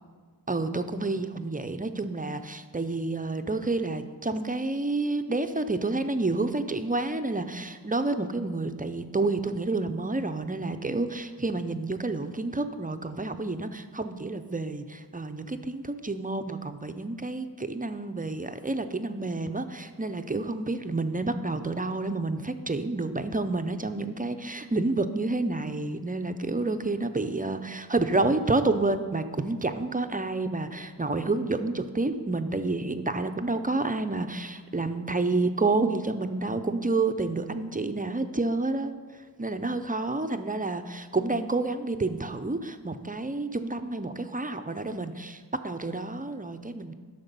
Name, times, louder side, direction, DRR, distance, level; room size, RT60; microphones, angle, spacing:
voice 1, 0.5-38.9 39.4-46.9, right 2 dB, 20° right, 8 dB, 0.5 m, -29 dB
11.0 x 6.6 x 5.3 m, 1.5 s
wide cardioid pair, 75°, 42 cm